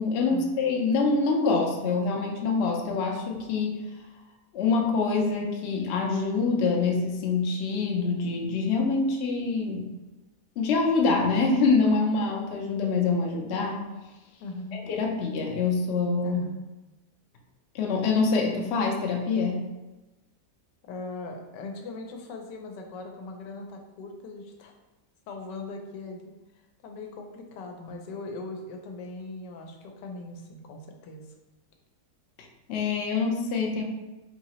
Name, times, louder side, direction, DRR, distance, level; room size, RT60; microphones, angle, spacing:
voice 1, 0.0-3.7 4.5-9.9 10.6-13.8 14.8-16.4 17.7-19.7 32.7-33.8, left 4 dB, 70° left, 0 dB, 0.6 m, -25 dB
voice 2, 14.4-14.8 16.2-16.6 20.8-24.7 25.3-26.3 26.8-31.2, left 3 dB, 90° left, 3 dB, 1.2 m, -40 dB
4.0 x 2.7 x 2.9 m, 1.1 s
omnidirectional pair, 1.8 m